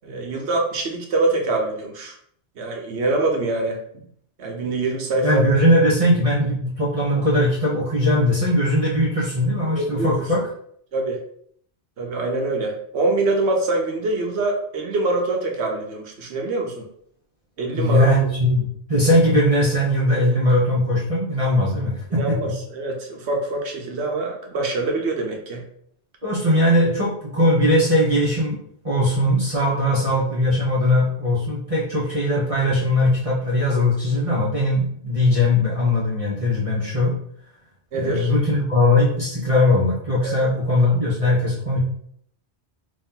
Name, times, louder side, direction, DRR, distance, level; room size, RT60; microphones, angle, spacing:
voice 1, 0.0-2.1 2.6-3.8 4.4-5.4 9.8-10.1 10.9-11.2 12.0-16.8 17.6-18.1 22.1-25.6 37.9-38.3 40.2-40.3, right 2 dB, 75° right, 2 dB, 1.1 m, -24 dB
voice 2, 5.2-10.4 17.7-22.4 26.2-28.6 28.8-37.1 37.9-41.8, left 1 dB, 35° right, -7 dB, 0.9 m, -20 dB
3.2 x 2.8 x 3.7 m, 0.65 s
omnidirectional pair, 1.1 m